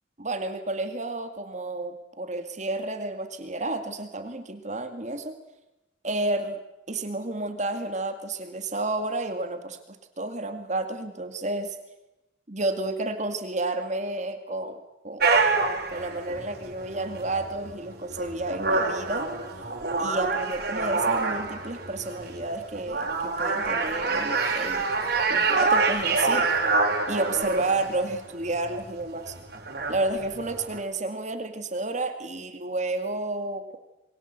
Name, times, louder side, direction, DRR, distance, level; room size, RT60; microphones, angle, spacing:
voice 1, 0.2-5.3 6.0-6.6 6.9-11.8 12.5-15.3 15.9-19.3 20.0-24.9 25.3-26.5 27.1-29.3 29.9-33.8, right 2 dB, 40° right, 7 dB, 2.1 m, -31 dB
sound 1, 15.2-30.8, right 3 dB, 55° right, 5.1 m, -27 dB
27.5 x 22.5 x 8.1 m, 0.98 s
head